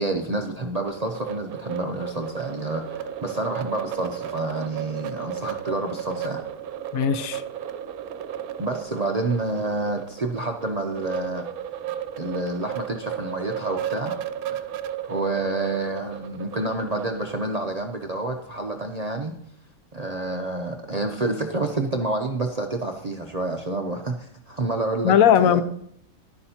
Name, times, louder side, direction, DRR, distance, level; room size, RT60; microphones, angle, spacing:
voice 1, 0.0-6.4 8.6-11.5 12.2-14.2 14.5-14.7 15.1-19.3 19.9-25.6, right 2 dB, 40° right, 0.6 m, -28 dB
sound 1, 0.8-17.5, right 10 dB, 90° right, 1.1 m, -34 dB
voice 2, 6.9-7.4 25.0-25.6, left 9 dB, 75° left, 1.1 m, -18 dB
11.5 x 9.9 x 2.8 m
omnidirectional pair, 1.5 m